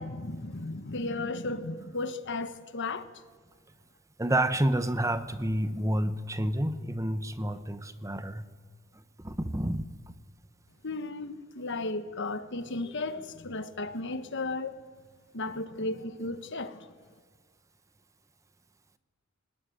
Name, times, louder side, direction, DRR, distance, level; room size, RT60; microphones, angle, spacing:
voice 1, 0.0-3.1 10.8-14.8 15.3-16.9, left 2 dB, 60° left, 1.4 m, -35 dB
voice 2, 4.2-8.5 9.2-9.8, right 1 dB, 15° right, 0.9 m, -29 dB
23.0 x 19.5 x 9.4 m
head